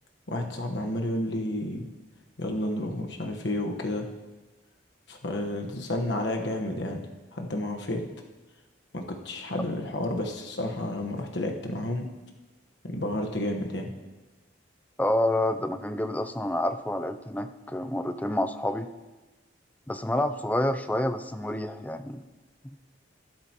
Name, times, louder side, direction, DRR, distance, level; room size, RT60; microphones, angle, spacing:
voice 1, 0.3-1.8 2.4-4.1 5.1-8.0 8.9-12.1 12.8-13.9, left 1 dB, 65° left, 2 dB, 1.3 m, -31 dB
voice 2, 15.0-18.9 19.9-22.2 22.6-22.8, left 1 dB, 10° left, 10 dB, 0.4 m, -28 dB
12.5 x 12.0 x 3.0 m, 1.2 s
head